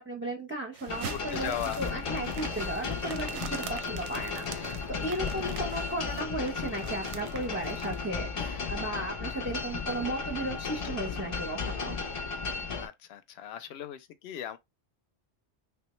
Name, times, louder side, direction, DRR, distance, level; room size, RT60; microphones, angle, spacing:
voice 1, 0.0-12.0, right 1 dB, 15° right, 0.5 m, -35 dB
sound 1, 0.7-8.0, right 8 dB, 90° right, 0.9 m, -44 dB
sound 2, 0.9-12.9, left 5 dB, 45° left, 0.4 m, -35 dB
voice 2, 1.1-1.8 5.1-5.6 12.8-14.6, left 10 dB, 70° left, 0.8 m, -38 dB
3.6 x 2.2 x 3.0 m
omnidirectional pair, 1.2 m